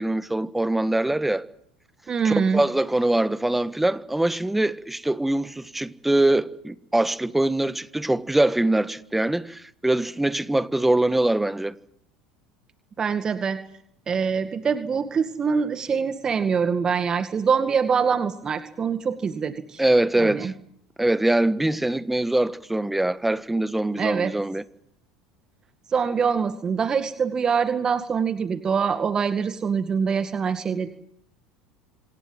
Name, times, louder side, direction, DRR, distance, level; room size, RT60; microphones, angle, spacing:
voice 1, 0.0-1.4 2.2-11.7 19.8-20.5 21.0-24.6, right 1 dB, 5° right, 1.4 m, -23 dB
voice 2, 2.1-2.6 13.0-13.6 14.1-19.8 20.2-20.5 24.0-24.3 25.9-30.9, right 6 dB, 30° right, 2.1 m, -24 dB
27.0 x 19.5 x 7.7 m
hypercardioid pair, 75°, 2 cm